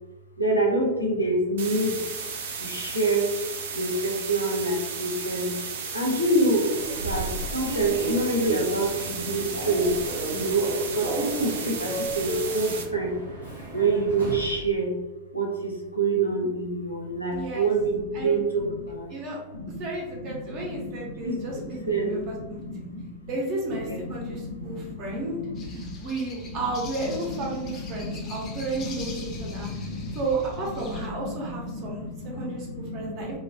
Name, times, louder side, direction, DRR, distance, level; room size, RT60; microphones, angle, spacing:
voice 1, 0.4-2.0 2.5-3.3 3.7-5.5 5.9-10.0 10.3-13.1 13.7-14.9 15.3-19.1 19.5-19.9 20.2-23.3 23.9-25.9 26.5-30.2 30.8-33.4, right 2 dB, 85° left, -1 dB, 0.5 m, -28 dB
sound 1, 1.6-12.8, right 5 dB, 60° right, 0.4 m, -34 dB
Human voice / Subway metro underground, 6.6-14.6, right 2 dB, 85° right, 0.8 m, -34 dB
voice 2, 17.3-17.7 18.1-18.4 19.1-19.4 19.8-22.9 23.3-25.4 25.7-29.9 30.1-33.4, right 2 dB, 40° right, -2 dB, 0.7 m, -33 dB
sound 2, 25.5-31.1, left 3 dB, 30° left, 0.4 m, -41 dB
2.3 x 2.2 x 2.5 m, 1.0 s
figure-of-eight pair, 90°, 0 cm